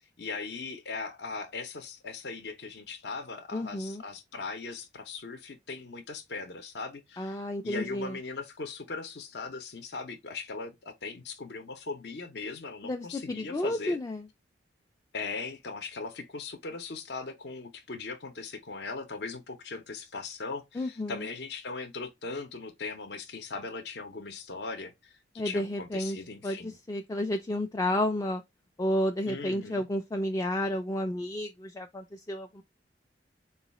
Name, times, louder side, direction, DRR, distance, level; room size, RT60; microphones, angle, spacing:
voice 1, 0.2-14.0 15.1-25.2 25.4-26.7 29.3-29.9, left 4 dB, 65° left, 0.7 m, -39 dB
voice 2, 3.5-4.0 7.2-8.2 12.8-14.3 20.7-21.2 25.4-26.2 26.4-28.4 28.8-32.6, left 1 dB, 20° left, 0.3 m, -31 dB
3.9 x 2.3 x 4.0 m
head